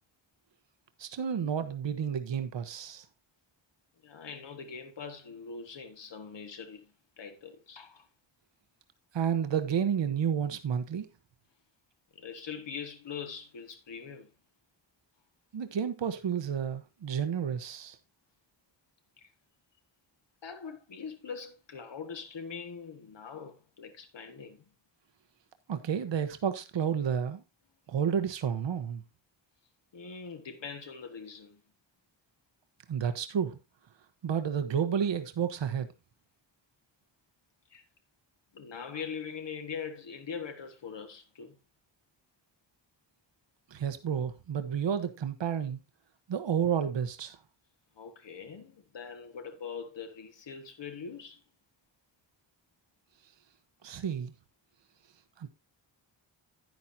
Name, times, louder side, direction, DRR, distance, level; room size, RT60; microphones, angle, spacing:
voice 1, 1.0-3.0 9.1-11.1 15.5-18.0 25.7-27.4 27.9-29.0 32.9-33.6 34.2-35.9 43.7-45.8 46.3-47.4 53.8-54.3 55.4-55.5, right 8 dB, 65° right, 1.1 m, -31 dB
voice 2, 4.0-8.1 12.1-14.3 19.2-19.3 20.4-24.6 29.9-31.6 37.7-37.8 38.5-41.6 48.0-51.4, left 6 dB, 65° left, 1.6 m, -42 dB
10.5 x 10.0 x 2.7 m
wide cardioid pair, 175°, 47 cm